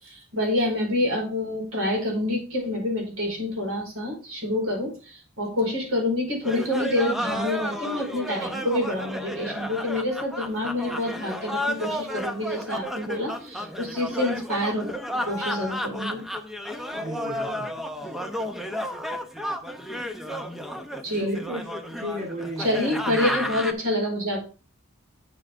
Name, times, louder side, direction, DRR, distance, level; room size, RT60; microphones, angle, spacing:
voice 1, 0.0-16.2 21.0-21.4 22.6-24.4, left 1 dB, 80° right, -1 dB, 4.9 m, -27 dB
sound 1, 6.4-23.7, equal, ahead, 0.7 m, -32 dB
voice 2, 16.9-17.7 21.1-21.7 22.0-23.6, left 1 dB, 40° right, -3 dB, 2.4 m, -34 dB
8.5 x 7.2 x 3.6 m, 0.37 s
head